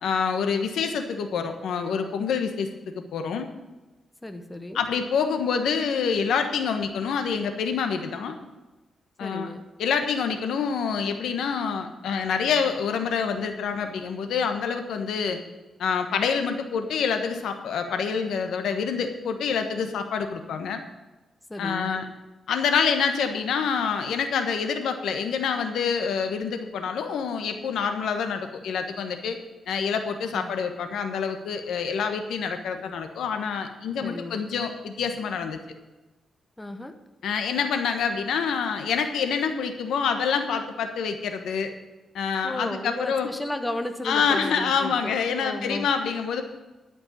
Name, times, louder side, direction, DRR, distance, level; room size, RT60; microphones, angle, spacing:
voice 1, 0.0-3.5 4.7-8.4 9.2-9.5 9.8-15.4 15.8-20.8 21.6-22.1 22.5-29.4 29.7-35.6 37.2-41.7 42.1-43.3 44.0-46.4, left 6 dB, 90° left, 6 dB, 1.2 m, -27 dB
voice 2, 4.2-4.8 9.2-9.7 21.5-22.0 30.3-30.5 34.0-34.4 36.6-36.9 42.4-45.9, left 1 dB, 10° left, 7 dB, 1.0 m, -34 dB
12.0 x 5.3 x 8.6 m, 1.1 s
cardioid pair, 105°, 0 cm